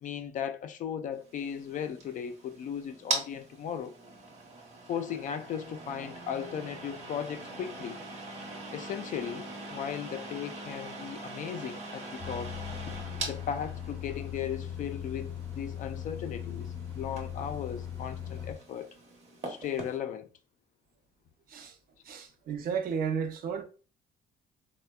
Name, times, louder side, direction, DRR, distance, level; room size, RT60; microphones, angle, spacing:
voice 1, 0.0-3.9 4.9-8.0 8.7-12.6 13.2-18.9 19.4-20.3, left 8 dB, 50° left, 0.4 m, -37 dB
sound 1, 1.3-20.0, right 2 dB, 40° right, 0.9 m, -42 dB
sound 2, 12.2-18.5, left 9 dB, 10° left, 0.6 m, -39 dB
voice 2, 22.0-23.6, right 6 dB, 60° right, 0.6 m, -33 dB
3.2 x 2.1 x 2.2 m
cardioid pair, 110°, 17 cm